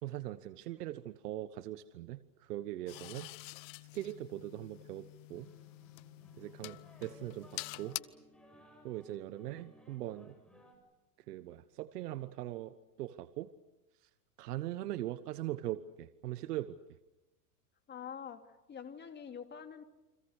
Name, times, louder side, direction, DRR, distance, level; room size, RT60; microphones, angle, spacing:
voice 1, 0.0-3.3 3.9-5.5 6.4-8.0 8.8-10.3 11.3-13.5 14.0-14.1 14.4-16.8, right 14 dB, 80° right, 12 dB, 1.3 m, -41 dB
sound 1, 2.9-8.0, left 25 dB, 50° left, 1.0 m, -47 dB
sound 2, 5.3-10.8, equal, ahead, 7.6 m, -60 dB
voice 2, 17.9-18.4 18.7-19.8, left 7 dB, 20° left, 6 dB, 2.7 m, -45 dB
30.0 x 25.0 x 6.5 m, 0.98 s
supercardioid pair, 125°, 46 cm